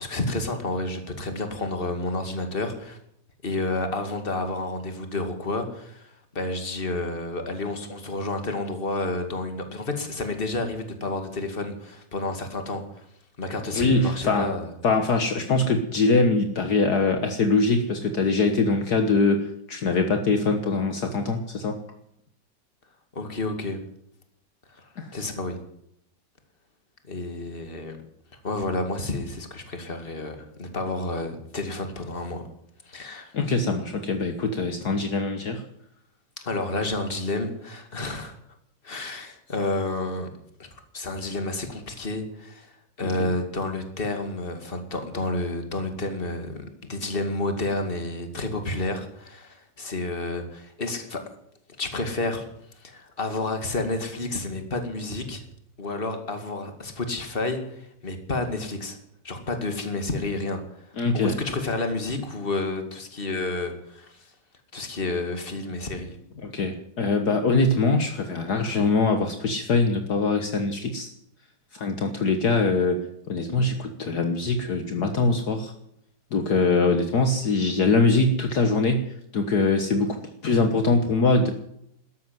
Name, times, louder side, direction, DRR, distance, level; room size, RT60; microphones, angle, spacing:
voice 1, 0.0-3.0 3.4-13.0 13.4-14.7 23.1-23.8 24.8-25.6 27.1-28.0 28.4-32.4 32.9-33.3 36.4-38.4 38.8-40.3 40.6-40.7 40.9-42.7 43.0-51.2 51.8-52.4 52.8-55.4 55.8-59.0 59.2-60.9 61.1-64.3 64.7-66.2, left 2 dB, 30° left, 6 dB, 2.5 m, -30 dB
voice 2, 13.7-14.5 14.8-21.8 25.0-25.1 33.3-35.6 43.0-43.3 61.0-61.4 66.4-71.1 71.7-73.0 73.3-75.7 76.3-80.2 80.4-81.5, left 3 dB, 60° left, 6 dB, 1.9 m, -23 dB
13.5 x 11.0 x 9.3 m, 0.72 s
omnidirectional pair, 2.0 m